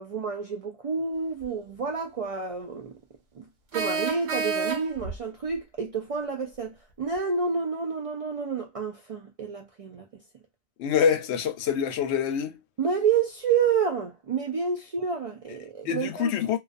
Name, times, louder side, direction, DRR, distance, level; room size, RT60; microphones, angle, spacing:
voice 1, 0.0-2.9 3.4-3.5 3.7-10.2 12.8-16.3, right 6 dB, 60° right, 0.3 m, -29 dB
sound 1, 1.4-1.5 3.7-5.2, right 4 dB, 75° right, 1.0 m, -29 dB
voice 2, 10.8-12.6 15.9-16.6, left 7 dB, 85° left, 0.8 m, -25 dB
2.3 x 2.3 x 2.4 m
omnidirectional pair, 1.1 m